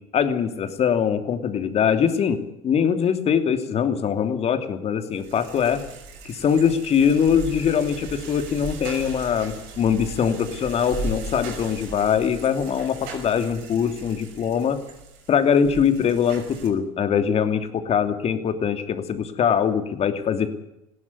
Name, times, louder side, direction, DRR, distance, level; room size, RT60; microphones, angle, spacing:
voice 1, 0.1-5.8 6.2-14.8 15.3-20.5, left 7 dB, 40° left, 7 dB, 2.9 m, -22 dB
sound 1, 5.1-16.7, right 3 dB, 65° right, 6.3 m, -37 dB
20.5 x 16.5 x 9.7 m, 0.87 s
hypercardioid pair, 75°, 17 cm